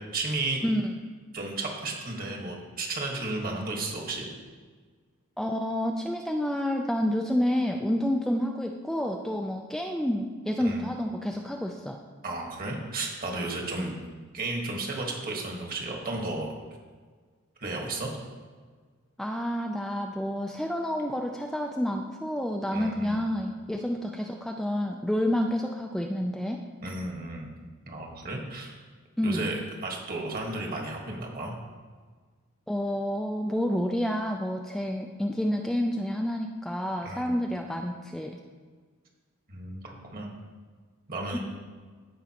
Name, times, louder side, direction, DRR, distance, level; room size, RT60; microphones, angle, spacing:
voice 1, 0.1-0.6 1.3-4.3 10.6-10.9 12.2-13.9 14.3-16.5 17.6-18.1 22.7-23.3 26.8-27.5 27.8-28.8 29.2-29.6 29.8-31.5 37.0-37.4 39.5-40.3 41.1-41.4, right 2 dB, 45° right, 0 dB, 1.4 m, -33 dB
voice 2, 0.6-0.9 5.4-12.0 13.8-13.9 19.2-26.6 29.2-29.6 32.7-38.4, equal, ahead, 2 dB, 0.3 m, -29 dB
14.5 x 5.1 x 2.9 m, 1.5 s
head